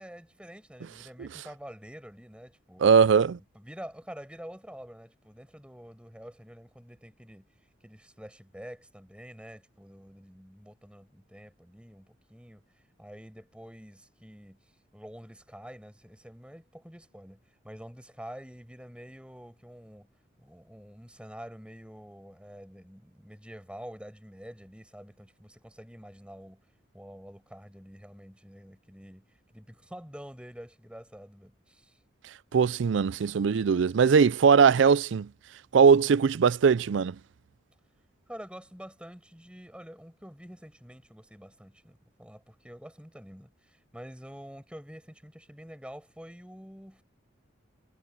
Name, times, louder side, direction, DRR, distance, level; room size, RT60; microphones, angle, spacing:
voice 1, 0.0-2.8 3.4-7.5 7.8-12.6 13.0-14.6 14.9-20.1 20.4-26.6 26.9-29.3 29.5-32.0 38.3-47.0, equal, 5° right, 6.0 m, -47 dB
voice 2, 2.8-3.4 32.5-35.3 35.7-37.2, right 6 dB, 70° right, 0.4 m, -20 dB
head